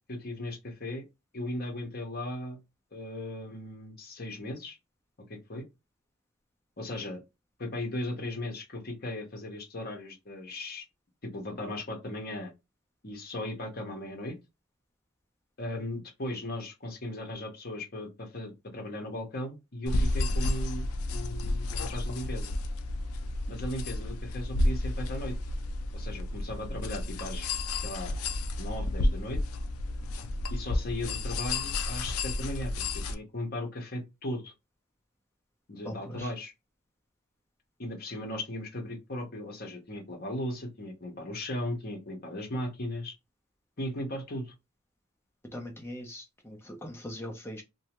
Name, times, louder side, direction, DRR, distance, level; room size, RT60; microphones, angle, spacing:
voice 1, 0.1-1.0 1.3-2.6 2.9-4.8 5.3-5.6 6.8-7.2 7.6-10.8 11.3-12.5 13.0-14.4 15.6-22.5 23.5-25.4 25.9-27.5 27.8-28.2 28.6-29.4 30.5-34.5 35.7-36.5 37.8-43.1 43.8-44.5, left 1 dB, 45° left, 0.9 m, -37 dB
sound 1, 19.9-33.1, left 2 dB, 80° left, 0.4 m, -31 dB
voice 2, 35.8-36.3 45.5-47.6, left 1 dB, 10° left, 0.6 m, -41 dB
2.7 x 2.2 x 2.9 m
head